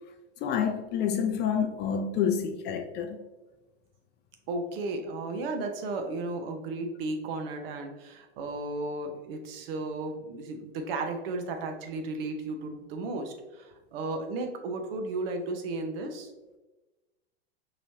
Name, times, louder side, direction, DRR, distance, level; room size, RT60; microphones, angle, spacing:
voice 1, 0.4-3.2, left 7 dB, 35° left, 0.4 m, -28 dB
voice 2, 4.5-16.3, right 2 dB, 65° right, 0.9 m, -34 dB
4.7 x 3.0 x 2.7 m
hypercardioid pair, 110°, 32 cm